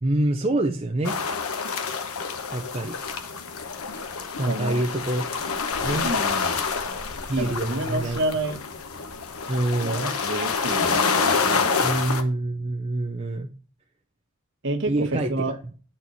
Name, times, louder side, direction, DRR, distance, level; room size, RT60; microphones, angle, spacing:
voice 1, 0.0-1.2 2.5-3.0 4.4-5.2 5.8-6.1 7.3-8.2 9.5-10.1 11.8-13.5 14.9-15.7, right 1 dB, 25° right, 2 dB, 0.6 m, -26 dB
sound 1, 1.0-12.2, left 5 dB, 85° left, 0.9 m, -27 dB
voice 2, 4.5-4.8 6.0-6.6 7.4-8.6 9.8-11.9 14.6-15.6, right 2 dB, 55° right, 5 dB, 1.3 m, -30 dB
7.8 x 4.4 x 4.1 m, 0.37 s
head